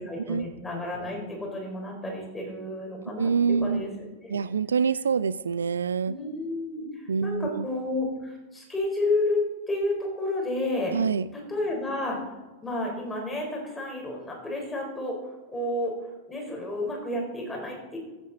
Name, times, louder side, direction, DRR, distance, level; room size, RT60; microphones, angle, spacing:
voice 1, 0.0-3.9 4.2-4.6 6.1-9.4 9.7-10.9 11.3-12.2 12.6-15.2 15.5-15.9 16.3-17.8, left 2 dB, 10° left, 0 dB, 4.4 m, -31 dB
voice 2, 3.2-3.8 4.3-6.1 7.1-7.7 10.9-11.3, right 5 dB, 70° right, 17 dB, 0.3 m, -25 dB
16.0 x 8.6 x 4.2 m, 1.2 s
figure-of-eight pair, 90°, 0 cm